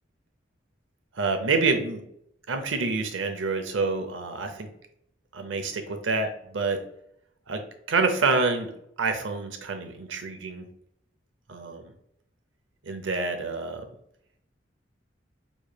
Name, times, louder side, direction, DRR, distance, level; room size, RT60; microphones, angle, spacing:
voice 1, 1.1-2.0 2.5-4.7 5.3-6.8 7.5-7.6 7.9-8.7 9.0-10.7 11.5-11.8 12.8-13.8, right 4 dB, 85° right, 6 dB, 0.6 m, -27 dB
4.8 x 3.1 x 2.3 m, 0.73 s
head